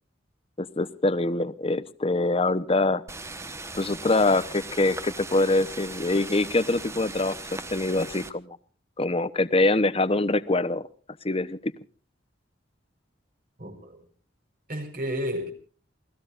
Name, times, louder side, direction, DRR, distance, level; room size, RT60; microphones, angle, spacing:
voice 1, 0.6-3.0 3.7-7.4 7.7-8.6 9.0-10.8 11.2-11.7, left 2 dB, 30° left, 0.9 m, -24 dB
sound 1, 3.1-8.3, right 2 dB, 15° right, 1.2 m, -39 dB
voice 2, 13.6-14.0 14.7-15.5, equal, 50° right, 4.6 m, -31 dB
29.0 x 19.5 x 2.5 m
head